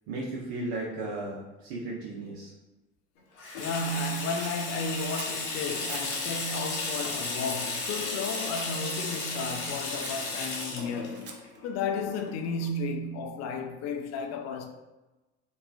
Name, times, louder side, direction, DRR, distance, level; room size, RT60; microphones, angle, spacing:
voice 1, 0.1-2.5, right 2 dB, 75° right, 0.7 m, -35 dB
Water tap faucet / Sink (filling or washing), 3.4-12.7, left 3 dB, 75° left, 0.8 m, -34 dB
voice 2, 3.6-11.4 11.6-14.7, left 3 dB, 50° left, 0.5 m, -33 dB
Scissors, 4.4-6.3 6.7-7.1 7.7-8.3 8.5-9.3 10.0-11.6, right 5 dB, 35° right, 0.5 m, -46 dB
3.0 x 2.3 x 2.3 m
hypercardioid pair, 70°, 33 cm